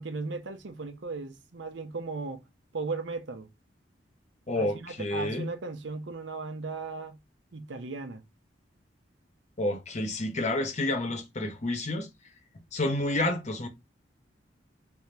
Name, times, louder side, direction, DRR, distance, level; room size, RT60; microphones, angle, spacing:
voice 1, 0.0-2.4 2.7-3.5 4.6-7.2 7.5-8.2, right 3 dB, 90° right, 0.7 m, -36 dB
voice 2, 4.5-5.5 9.6-12.1 12.7-13.7, left 1 dB, 40° left, 0.9 m, -29 dB
3.4 x 2.8 x 3.3 m
head